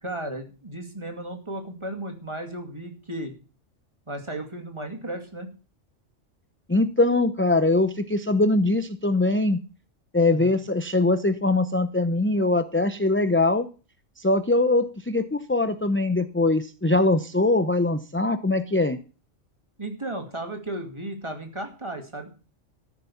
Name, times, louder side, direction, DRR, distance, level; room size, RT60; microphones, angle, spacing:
voice 1, 0.0-3.3 4.1-5.5 10.3-10.5 19.8-22.3, right 1 dB, 20° right, 4 dB, 2.4 m, -34 dB
voice 2, 6.7-9.6 10.1-13.7 14.2-19.0, left 2 dB, 15° left, 10 dB, 0.6 m, -22 dB
14.5 x 7.0 x 7.2 m, 0.36 s
omnidirectional pair, 1.3 m